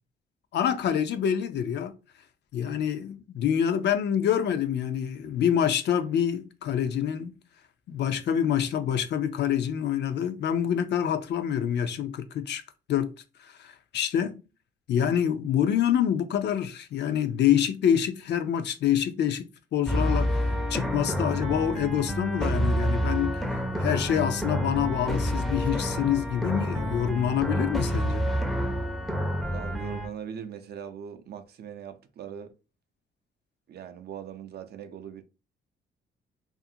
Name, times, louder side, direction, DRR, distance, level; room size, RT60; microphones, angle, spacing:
voice 1, 0.5-1.9 2.5-7.3 7.9-12.6 12.9-13.1 13.4-14.4 14.9-20.4 20.7-23.4 23.8-28.3, left 9 dB, 60° left, 0.4 m, -26 dB
sound 1, 19.9-30.1, equal, ahead, 0.5 m, -28 dB
voice 2, 29.5-32.5 33.7-35.2, right 8 dB, 55° right, 0.4 m, -40 dB
2.5 x 2.5 x 2.7 m
cardioid pair, 90°, 20 cm